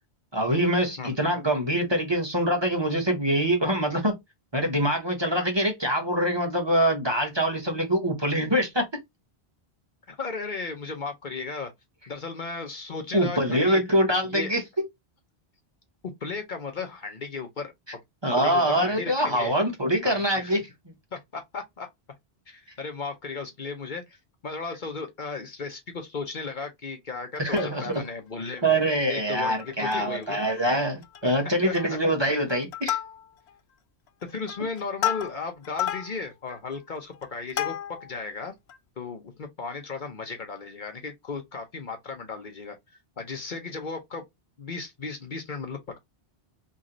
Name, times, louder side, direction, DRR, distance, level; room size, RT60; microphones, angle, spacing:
voice 1, 0.3-4.2 4.5-8.8 13.1-14.6 18.2-20.6 27.4-27.9 28.6-33.0, right 1 dB, 25° right, 1.1 m, -24 dB
voice 2, 10.1-11.7 12.1-13.8 14.2-14.5 16.2-17.7 18.4-19.5 20.0-20.5 21.1-21.9 22.5-24.2 24.4-28.8 29.1-30.4 31.2-32.0 34.3-37.7 38.0-38.5 39.0-42.8 43.2-44.2 44.6-46.0, left 4 dB, 50° left, 0.9 m, -35 dB
Plucked string instrument, 27.3-28.2 28.6-28.7 28.9-29.1 29.6-30.3 30.6-30.7 31.0-31.4 31.7-32.1 32.5-33.5 34.1-38.2 38.7-38.8, left 11 dB, 90° left, 0.9 m, -33 dB
3.1 x 2.8 x 3.8 m
omnidirectional pair, 1.1 m